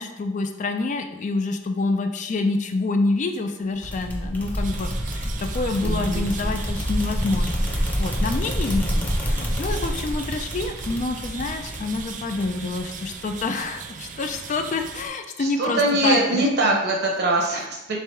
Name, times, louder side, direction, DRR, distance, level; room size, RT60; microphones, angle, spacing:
voice 1, 0.0-16.8, left 3 dB, 40° left, 6 dB, 0.4 m, -27 dB
sound 1, 3.8-13.1, equal, 10° left, 0.7 m, -27 dB
sound 2, 4.6-15.1, right 6 dB, 40° right, 0.4 m, -38 dB
voice 2, 5.8-6.4 15.4-18.0, right 2 dB, 60° right, -1 dB, 0.9 m, -22 dB
3.5 x 3.3 x 4.3 m, 0.93 s
head